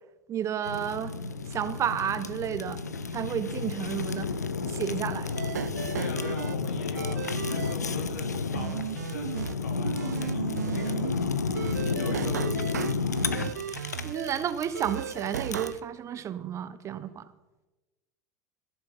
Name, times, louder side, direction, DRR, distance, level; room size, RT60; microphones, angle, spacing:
voice 1, 0.3-1.1 1.4-2.8 3.1-4.3 4.6-5.3 12.1-12.2 13.7-17.3, right 9 dB, 35° right, 13 dB, 0.8 m, -32 dB
Fire, 0.6-15.8, left 4 dB, 85° left, 0.6 m, -32 dB
sound 1, 5.3-6.6 7.0-7.7 8.5-9.5 9.8-11.2 11.5-14.3 14.7-15.7, right 8 dB, 80° right, 0.4 m, -35 dB
voice 2, 5.9-13.1, left 2 dB, 70° left, 2 dB, 3.1 m, -42 dB
15.5 x 6.9 x 5.6 m, 1.1 s
figure-of-eight pair, 80°, 9 cm